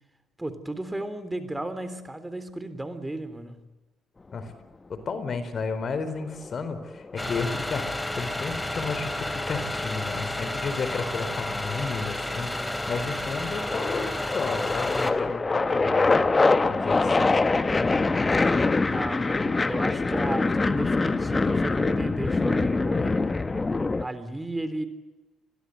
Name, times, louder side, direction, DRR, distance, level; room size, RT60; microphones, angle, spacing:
voice 1, 0.4-3.7 18.8-23.3 24.0-24.9, right 1 dB, 15° right, 11 dB, 3.6 m, -34 dB
voice 2, 5.1-7.8 8.2-17.3, left 4 dB, 45° left, 12 dB, 4.4 m, -33 dB
sound 1, 6.1-7.3 9.1-10.4 11.3-11.8 12.1-24.0, left 3 dB, 25° left, 1.5 m, -24 dB
sound 2, 7.2-15.1, left 1 dB, 10° left, 3.5 m, -31 dB
29.0 x 22.0 x 8.1 m, 1.2 s
hypercardioid pair, 55°, 0 cm